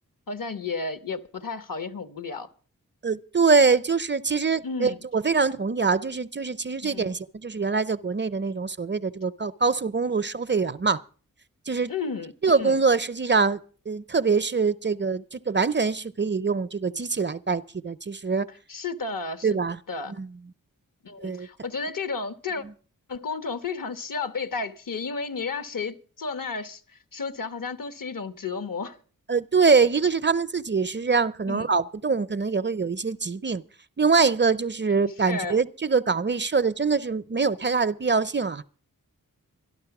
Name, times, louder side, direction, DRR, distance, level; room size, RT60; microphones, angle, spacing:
voice 1, 0.3-2.5 4.6-5.0 6.8-7.1 11.9-12.3 12.6-12.8 18.7-19.6 19.9-20.1 21.0-22.6 23.1-29.0 31.5-31.7 35.2-35.6, left 4 dB, 65° left, 1.1 m, -32 dB
voice 2, 3.0-11.0 11.7-11.9 12.4-13.6 13.9-18.5 19.4-19.8 20.2-20.3 21.2-21.5 29.3-33.6 34.0-38.6, right 4 dB, 30° right, 0.5 m, -24 dB
12.5 x 12.0 x 5.9 m
cardioid pair, 50°, 36 cm